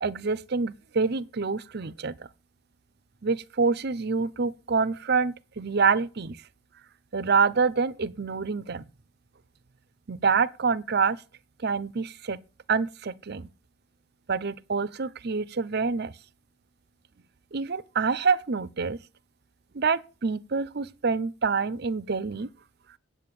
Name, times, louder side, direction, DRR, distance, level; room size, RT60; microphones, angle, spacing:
voice 1, 0.0-2.3 3.2-6.4 7.1-8.8 10.1-11.2 11.6-12.4 12.7-13.5 14.3-16.1 17.5-19.0 19.7-22.5, right 5 dB, 50° right, 0.6 m, -26 dB
8.8 x 8.5 x 8.4 m
head